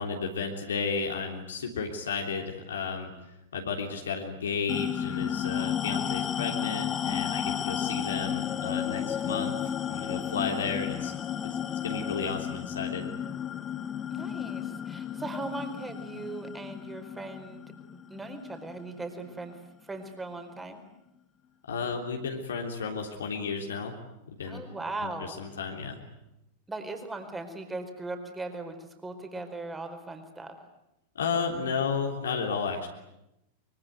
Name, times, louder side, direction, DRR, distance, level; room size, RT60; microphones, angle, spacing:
voice 1, 0.0-3.1 3.5-11.1 11.4-11.6 11.8-13.1 21.7-24.0 24.4-24.6 25.0-26.0 31.1-32.9, left 5 dB, 65° left, 2 dB, 3.4 m, -33 dB
sound 1, 4.7-19.5, left 9 dB, 25° left, 1.0 m, -33 dB
voice 2, 14.1-17.6 18.1-20.8 24.5-25.4 26.7-30.6, right 2 dB, 10° right, 6 dB, 4.6 m, -39 dB
24.5 x 24.0 x 9.5 m, 0.87 s
figure-of-eight pair, 90°, 0 cm